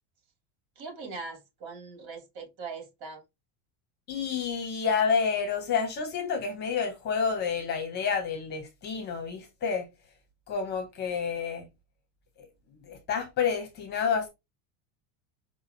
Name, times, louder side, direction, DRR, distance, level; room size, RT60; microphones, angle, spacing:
voice 1, 0.8-3.2, right 4 dB, 90° right, 2.5 m, -41 dB
voice 2, 4.1-9.9 10.5-11.7 12.8-14.3, left 6 dB, 20° left, 0.6 m, -29 dB
4.8 x 2.7 x 2.6 m
cardioid pair, 180°, 49 cm